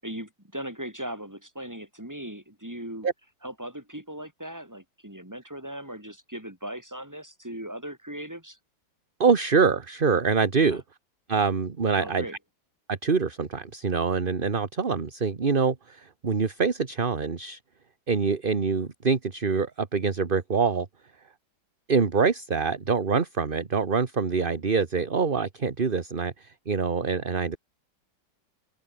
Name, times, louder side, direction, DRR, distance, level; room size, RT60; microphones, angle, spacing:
voice 1, 0.0-3.1 3.4-8.6 10.6-10.8 12.0-12.4, right 1 dB, 10° right, 5.1 m, -38 dB
voice 2, 9.2-10.8 11.3-12.2 12.9-17.6 18.1-20.9 21.9-27.6, right 5 dB, 30° right, 1.5 m, -25 dB
open air
omnidirectional pair, 1.9 m